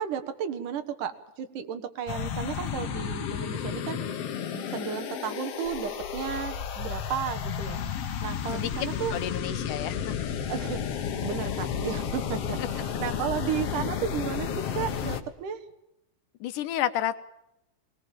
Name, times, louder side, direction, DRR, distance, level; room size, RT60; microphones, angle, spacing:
voice 1, 0.0-4.0 4.5-7.8 8.2-9.1 10.4-15.6, right 8 dB, 75° right, 8 dB, 2.9 m, -34 dB
sound 1, 2.1-15.2, left 8 dB, 60° left, 2.0 m, -32 dB
voice 2, 9.1-10.2 12.6-12.7 13.8-13.9 16.4-17.2, left 11 dB, 75° left, 11 dB, 2.5 m, -31 dB
21.0 x 20.5 x 7.5 m, 0.84 s
omnidirectional pair, 3.7 m